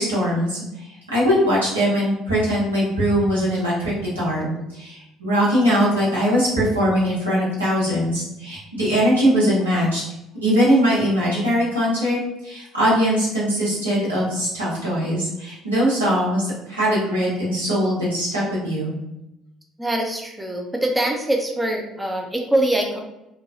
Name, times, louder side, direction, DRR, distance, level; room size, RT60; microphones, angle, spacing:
voice 1, 0.0-10.0 10.4-18.9, equal, 90° right, -9 dB, 1.1 m, -21 dB
voice 2, 19.8-23.0, right 1 dB, 10° right, 1 dB, 0.5 m, -23 dB
3.2 x 2.2 x 2.5 m, 0.89 s
figure-of-eight pair, 55°, 0 cm